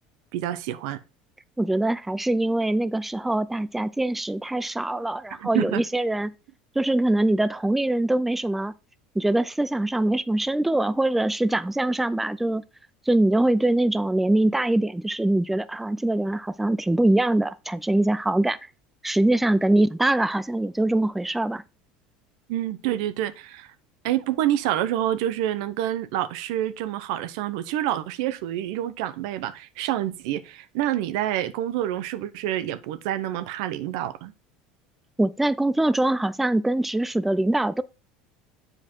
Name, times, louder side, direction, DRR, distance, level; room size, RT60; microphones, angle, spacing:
voice 1, 0.3-1.0 5.4-5.8 22.5-23.7 24.0-34.3, right 12 dB, 80° right, 0.7 m, -27 dB
voice 2, 1.6-6.3 6.8-8.7 9.2-12.6 13.1-18.6 19.0-21.6 35.2-37.8, right 1 dB, 5° right, 0.4 m, -23 dB
7.5 x 4.9 x 4.4 m
supercardioid pair, 110°, 3 cm